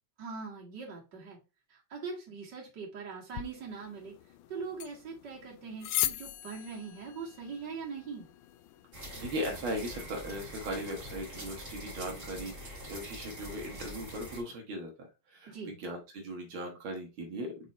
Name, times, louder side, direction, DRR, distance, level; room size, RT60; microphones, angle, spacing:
voice 1, 0.2-1.4 1.7-4.1 4.5-8.3 15.5-15.7, right 5 dB, 60° right, -5 dB, 2.7 m, -41 dB
sound 1, 3.3-9.3, left 13 dB, 85° left, 1.4 m, -39 dB
sound 2, 8.9-14.4, equal, 30° right, 2.3 m, -44 dB
voice 2, 9.2-17.7, equal, 90° right, 1 dB, 2.2 m, -38 dB
5.9 x 4.2 x 4.1 m, 0.29 s
omnidirectional pair, 2.1 m